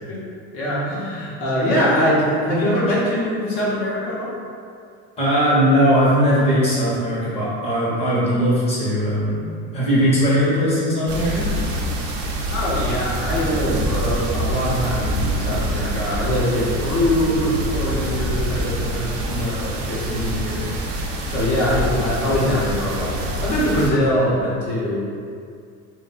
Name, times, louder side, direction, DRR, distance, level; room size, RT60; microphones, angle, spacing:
voice 1, 0.5-4.3 12.5-25.0, equal, 45° left, -7 dB, 1.2 m, -23 dB
voice 2, 5.2-9.3 9.7-11.5 24.0-24.1, equal, 20° left, -9 dB, 1.1 m, -19 dB
sound 1, 11.1-23.9, right 1 dB, 45° right, 0.6 m, -25 dB
3.6 x 2.6 x 4.0 m, 2.3 s
cardioid pair, 165°, 33 cm